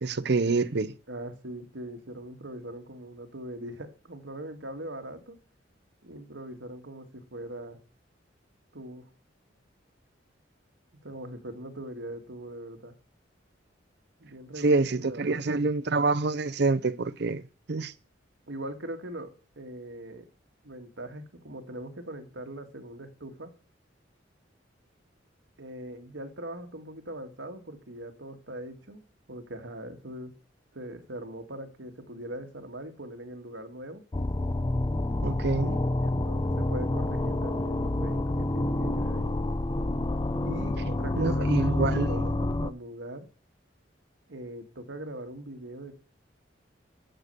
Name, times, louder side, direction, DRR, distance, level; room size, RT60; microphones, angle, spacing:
voice 1, 0.0-0.9 14.6-17.4 17.7-17.9 35.2-35.8 41.2-42.2, right 3 dB, 60° right, 0.6 m, -26 dB
voice 2, 1.1-5.4 6.0-7.8 8.7-9.0 11.0-12.9 14.2-15.5 18.5-20.3 20.6-23.5 25.6-29.0 29.3-30.3 30.7-34.0 36.0-39.4 40.4-43.3 44.3-46.0, right 1 dB, 80° right, 1.9 m, -41 dB
sound 1, 34.1-42.7, left 2 dB, 25° left, 0.5 m, -28 dB
11.0 x 6.7 x 6.8 m
head